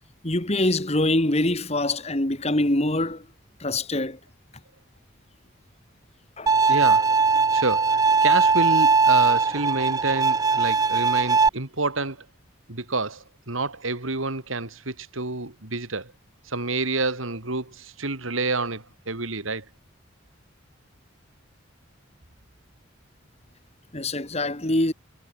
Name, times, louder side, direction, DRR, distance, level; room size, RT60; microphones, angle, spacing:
voice 1, 0.2-3.2 3.6-4.2 6.4-6.5 23.9-24.9, left 1 dB, 30° left, 2.0 m, -24 dB
Bowed string instrument, 6.5-11.5, right 4 dB, 20° right, 0.4 m, -20 dB
voice 2, 6.7-7.2 7.5-12.2 12.7-16.1 16.5-19.6, right 3 dB, 80° right, 3.2 m, -28 dB
head